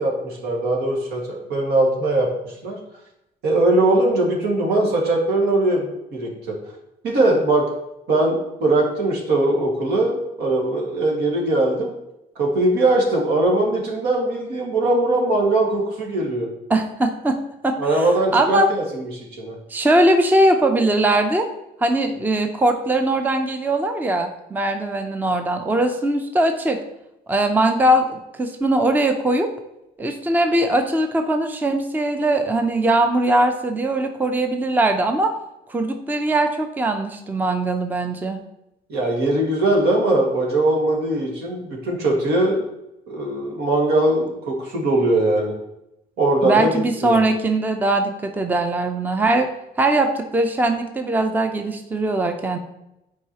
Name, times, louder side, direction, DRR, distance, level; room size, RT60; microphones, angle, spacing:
voice 1, 0.0-2.8 3.4-6.3 7.0-7.6 8.1-11.9 12.4-16.5 17.8-19.6 38.9-42.6 43.1-45.5 46.2-46.7 47.0-47.2, right 2 dB, 75° right, -1 dB, 1.9 m, -20 dB
voice 2, 16.7-17.4 17.6-18.7 19.7-21.5 21.8-26.8 27.3-29.5 30.0-35.3 35.7-38.4 46.4-49.5 49.8-52.6, right 1 dB, 10° right, 6 dB, 0.5 m, -20 dB
8.0 x 4.7 x 2.9 m, 0.88 s
cardioid pair, 110°, 17 cm